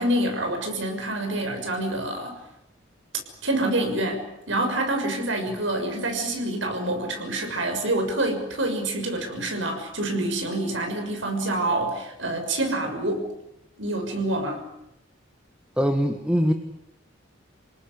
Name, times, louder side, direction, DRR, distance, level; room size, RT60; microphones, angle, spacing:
voice 1, 0.0-2.4 3.4-13.3 13.8-14.6, right 1 dB, 85° right, 4 dB, 6.5 m, -27 dB
voice 2, 15.8-16.5, equal, 5° right, 5 dB, 1.6 m, -22 dB
28.5 x 18.5 x 9.9 m, 0.85 s
head